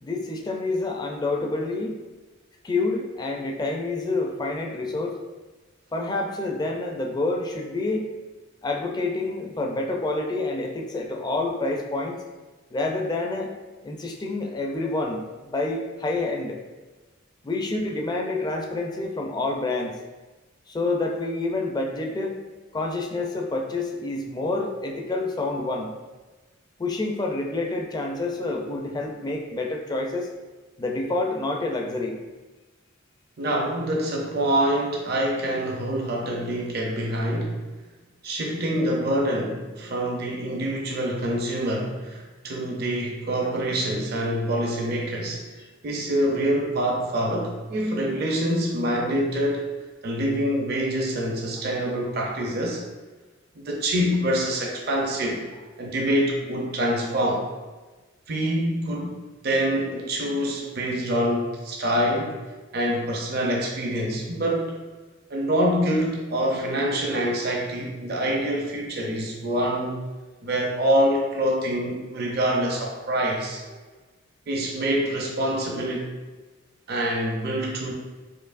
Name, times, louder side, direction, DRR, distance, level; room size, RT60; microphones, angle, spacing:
voice 1, 0.0-2.0 2.6-5.2 5.9-8.1 8.6-12.2 12.7-13.5 13.8-16.6 17.4-19.9 20.7-22.4 22.7-25.9 26.8-30.3 30.8-32.2 43.4-43.5 45.6-45.7 73.7-73.8, left 2 dB, 20° left, 1 dB, 0.4 m, -28 dB
voice 2, 33.4-37.6 38.2-45.4 45.8-49.7 50.0-52.8 53.6-55.4 55.8-57.4 58.3-62.4 62.7-64.8 65.3-70.0 70.4-73.6 74.5-76.1 76.9-77.9, right 1 dB, 50° right, -1 dB, 0.6 m, -25 dB
4.5 x 2.6 x 2.5 m, 1.2 s
head